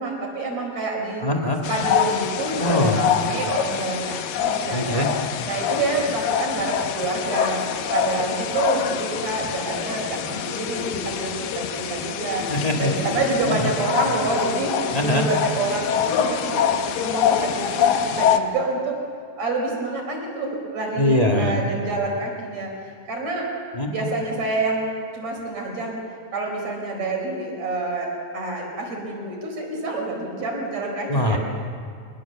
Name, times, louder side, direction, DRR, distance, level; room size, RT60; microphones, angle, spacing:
voice 1, 0.0-1.3 1.7-5.1 5.4-12.5 12.8-14.7 15.0-19.0 19.4-23.5 23.9-26.0 26.3-31.4, right 2 dB, 50° right, 1 dB, 5.4 m, -27 dB
voice 2, 1.2-1.6 2.6-3.0 4.7-5.1 12.5-12.9 13.5-13.7 14.9-15.2 21.0-21.6 23.7-24.1 31.1-31.4, left 1 dB, 30° left, 3 dB, 0.7 m, -22 dB
sound 1, 1.6-18.4, left 8 dB, 75° left, 2.7 m, -25 dB
25.5 x 21.0 x 7.2 m, 2.2 s
omnidirectional pair, 4.2 m